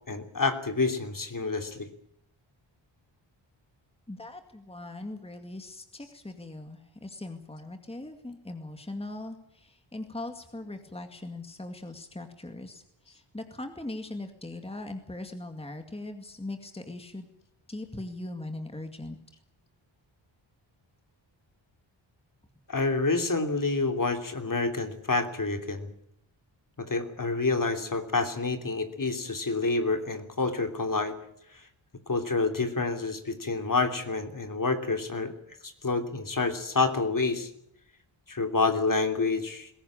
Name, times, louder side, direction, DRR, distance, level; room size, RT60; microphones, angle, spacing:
voice 1, 0.1-1.9 22.7-25.9 26.8-31.1 31.5-31.7 32.1-35.3 35.6-37.5 38.3-39.7, left 3 dB, 40° left, 6 dB, 3.0 m, -28 dB
voice 2, 4.1-17.3 17.7-19.2, left 2 dB, 10° left, 6 dB, 2.2 m, -40 dB
21.0 x 17.5 x 8.8 m, 0.75 s
wide cardioid pair, 85°, 48 cm